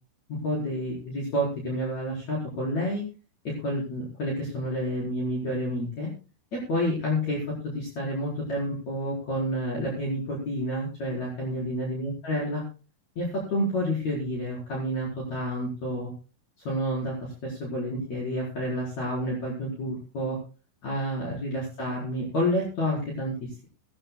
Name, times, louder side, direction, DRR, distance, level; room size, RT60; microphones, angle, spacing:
voice 1, 0.3-3.0 3.4-6.1 6.5-12.6 13.2-16.1 16.7-20.4 20.8-23.6, equal, 45° left, -5 dB, 5.7 m, -29 dB
20.5 x 14.5 x 2.3 m, 0.35 s
omnidirectional pair, 4.4 m